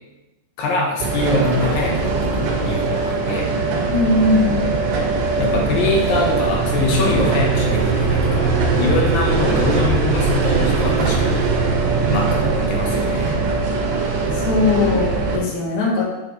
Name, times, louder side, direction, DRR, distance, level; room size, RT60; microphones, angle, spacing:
voice 1, 0.6-3.5 5.4-11.5 12.1-13.4, left 2 dB, 70° left, -1 dB, 2.5 m, -23 dB
sound 1, 1.0-15.4, right 4 dB, 90° right, 3.6 m, -20 dB
voice 2, 3.9-4.6 14.3-16.0, left 2 dB, 50° left, -5 dB, 3.1 m, -19 dB
9.1 x 6.7 x 3.4 m, 1.0 s
omnidirectional pair, 4.8 m